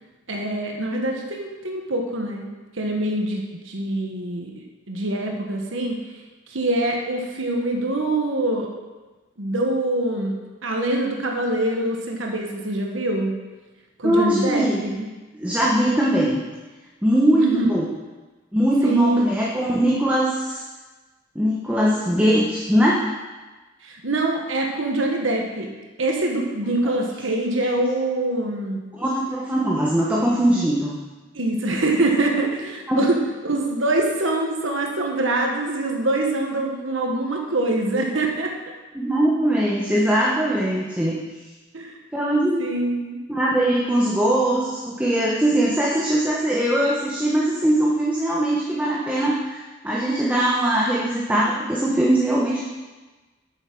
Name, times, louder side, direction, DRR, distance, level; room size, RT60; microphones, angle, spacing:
voice 1, 0.3-2.5 2.7-6.0 6.5-8.7 9.4-10.4 10.6-13.4 14.0-15.1 17.4-17.7 18.8-19.4 23.8-25.7 26.0-28.8 31.3-33.2 33.4-38.5 41.7-42.0 42.6-43.2, right 2 dB, 80° right, 1 dB, 1.4 m, -24 dB
voice 2, 14.0-14.8 15.3-16.4 17.0-17.8 18.5-20.6 21.3-23.0 28.9-31.0 32.9-33.1 38.9-41.2 42.1-42.6 43.3-52.6, right 1 dB, 5° right, -5 dB, 1.1 m, -21 dB
8.8 x 7.2 x 6.1 m, 1.2 s
head